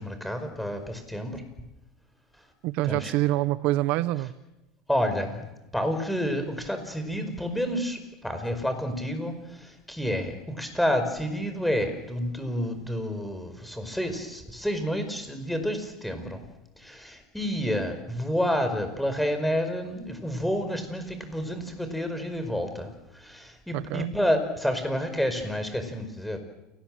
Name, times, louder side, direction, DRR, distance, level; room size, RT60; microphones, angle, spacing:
voice 1, 0.0-1.4 2.9-3.1 4.9-5.4 5.7-16.4 16.8-26.4, equal, ahead, 5.1 m, -29 dB
voice 2, 2.6-4.3 23.7-24.1, right 17 dB, 60° right, 1.0 m, -26 dB
28.5 x 19.0 x 7.7 m
supercardioid pair, 105°, 3 cm